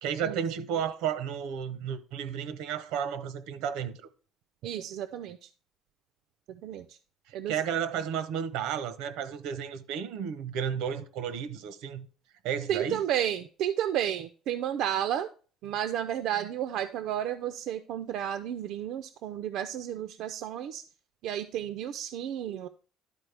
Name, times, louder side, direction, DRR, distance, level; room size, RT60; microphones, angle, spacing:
voice 1, 0.0-4.0 7.3-12.1 12.4-13.0, right 8 dB, 85° right, 0.8 m, -32 dB
voice 2, 4.6-5.5 6.5-7.0 7.3-7.6 12.7-15.3 15.6-20.8 21.2-22.7, right 10 dB, 65° right, 0.4 m, -32 dB
11.5 x 4.2 x 3.3 m
cardioid pair, 160°, 0 cm